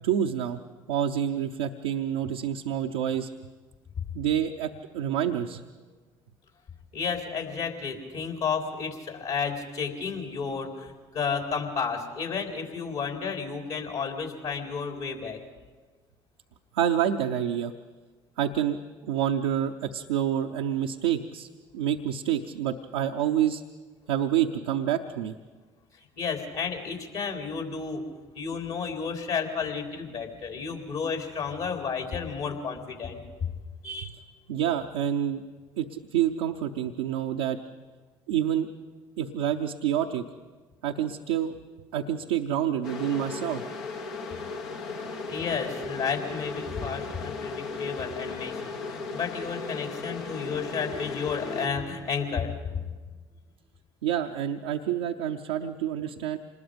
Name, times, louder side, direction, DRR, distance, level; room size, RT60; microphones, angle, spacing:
voice 1, 0.0-0.6 0.9-3.3 4.1-5.6 16.7-17.7 18.4-21.5 21.7-23.6 24.1-25.3 34.5-35.4 35.8-37.6 38.3-38.7 39.2-40.2 40.8-41.6 41.9-43.6 54.0-56.4, right 10 dB, 90° right, 2 dB, 0.7 m, -28 dB
voice 2, 6.9-15.4 26.0-28.0 28.3-33.2 33.8-34.1 45.3-52.9, left 5 dB, 65° left, 3 dB, 3.8 m, -32 dB
sound 1, 42.8-51.7, left 4 dB, 85° left, 1.5 m, -36 dB
26.5 x 20.5 x 5.2 m, 1.4 s
hypercardioid pair, 60°, 12 cm